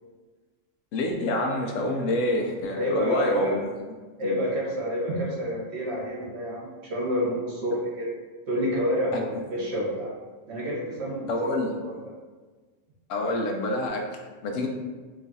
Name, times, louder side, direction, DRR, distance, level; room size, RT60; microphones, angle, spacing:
voice 1, 0.9-3.6 4.2-4.4 9.1-9.2 9.8-9.9 11.3-11.7 13.1-14.7, left 1 dB, 90° left, 2 dB, 1.0 m, -27 dB
voice 2, 2.7-3.6 4.2-8.1 8.5-10.1 10.5-12.0, equal, 60° right, -4 dB, 1.1 m, -29 dB
3.1 x 2.4 x 4.0 m, 1.4 s
omnidirectional pair, 1.3 m